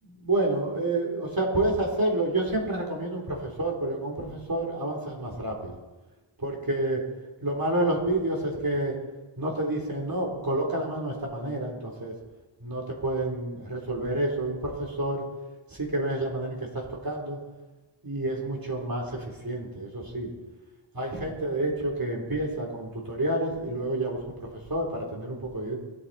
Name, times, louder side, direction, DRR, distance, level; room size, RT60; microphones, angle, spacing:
voice 1, 0.0-5.8 6.4-7.0 7.4-8.9 9.4-12.1 12.6-15.2 15.7-17.4 18.0-20.3 20.9-25.8, right 1 dB, 45° right, -1 dB, 3.7 m, -29 dB
20.0 x 8.9 x 4.2 m, 1.2 s
wide cardioid pair, 50°, 50 cm